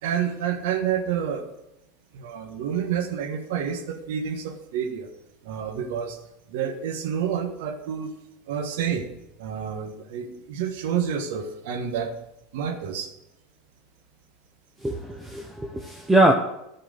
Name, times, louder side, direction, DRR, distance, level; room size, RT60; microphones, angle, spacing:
voice 1, 0.0-1.5 2.1-5.1 5.4-6.2 6.5-8.1 8.5-9.1 9.4-12.1 12.5-13.1, right 8 dB, 70° right, 6 dB, 1.5 m, -29 dB
voice 2, 14.8-16.3, right 1 dB, 10° right, 2 dB, 1.0 m, -22 dB
13.0 x 4.7 x 6.7 m, 0.86 s
hypercardioid pair, 90°, 0 cm